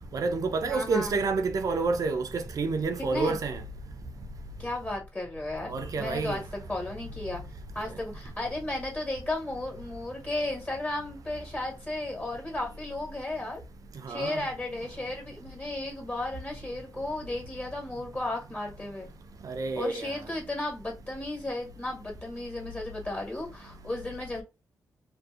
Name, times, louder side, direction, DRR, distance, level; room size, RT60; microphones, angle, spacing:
voice 1, 0.1-3.6 5.7-6.4 14.0-14.5 19.4-20.1, right 3 dB, 60° right, 0.5 m, -29 dB
voice 2, 0.7-1.1 3.1-3.4 4.6-5.7 6.0-6.4 6.7-7.4 7.7-13.6 14.1-19.1 19.8-24.4, left 2 dB, 25° left, 1.3 m, -34 dB
2.6 x 2.2 x 2.4 m
cardioid pair, 85°, 7 cm